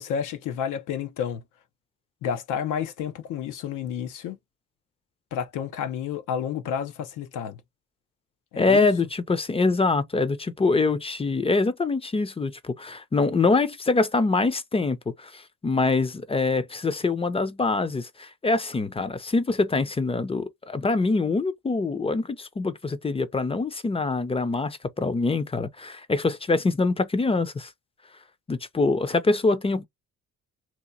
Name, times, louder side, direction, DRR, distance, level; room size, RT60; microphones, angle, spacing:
voice 1, 0.0-1.4 2.2-4.4 5.3-7.6 8.5-8.9, left 8 dB, 85° left, 0.8 m, -30 dB
voice 2, 8.6-27.7 28.5-29.9, left 3 dB, 20° left, 0.5 m, -24 dB
2.9 x 2.3 x 3.8 m
cardioid pair, 90°, 30 cm